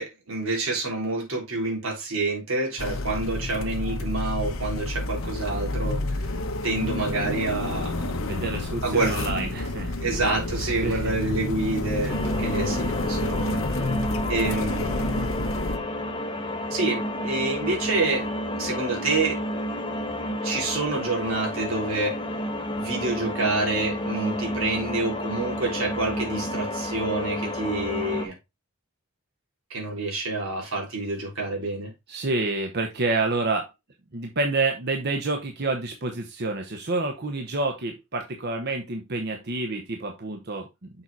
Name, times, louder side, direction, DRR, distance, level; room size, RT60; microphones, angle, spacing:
voice 1, 0.0-6.0 6.6-8.3 8.8-9.2 10.0-13.6 14.3-15.2 16.7-18.3 18.6-19.4 20.4-22.2 22.8-28.3 29.7-31.9, right 2 dB, 85° right, 3.6 m, -28 dB
sound 1, 2.8-15.8, left 2 dB, 80° left, 1.0 m, -29 dB
voice 2, 8.2-10.0 10.8-11.1 32.1-33.7 34.1-40.9, right 3 dB, 55° right, 1.0 m, -28 dB
sound 2, 12.1-28.3, equal, 25° left, 1.1 m, -30 dB
7.0 x 4.7 x 4.0 m
head